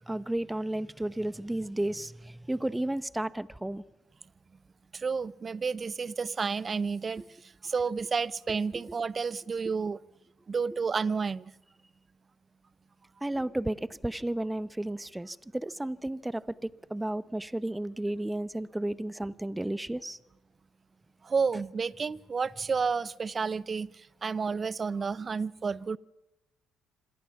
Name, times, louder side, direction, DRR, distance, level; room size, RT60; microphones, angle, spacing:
voice 1, 0.1-3.8 7.2-7.3 8.7-8.8 13.2-20.2, right 1 dB, 10° right, 0.9 m, -33 dB
voice 2, 4.9-7.2 7.6-10.0 10.5-11.5 21.2-23.9 24.2-26.0, right 5 dB, 40° right, 0.8 m, -30 dB
26.5 x 26.0 x 5.9 m
hypercardioid pair, 55°, 0 cm